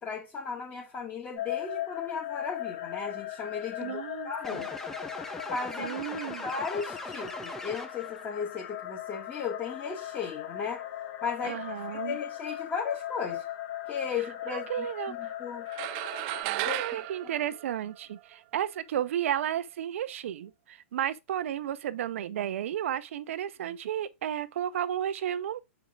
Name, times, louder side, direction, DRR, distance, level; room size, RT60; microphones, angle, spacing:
voice 1, 0.0-4.7 5.5-6.1 6.4-10.8 11.2-11.6 11.9-13.4 13.9-15.7 16.4-17.0, left 6 dB, 20° left, 2.1 m, -36 dB
sound 1, 1.4-16.4, left 12 dB, 45° left, 1.7 m, -39 dB
voice 2, 3.8-4.6 5.8-6.5 11.4-12.2 14.5-15.3 16.4-25.6, right 10 dB, 70° right, 0.7 m, -33 dB
sound 2, 4.4-8.2, left 2 dB, 5° left, 0.9 m, -40 dB
sound 3, 15.7-18.3, right 18 dB, 40° right, 0.4 m, -34 dB
6.9 x 4.6 x 3.7 m
hypercardioid pair, 140°, 7 cm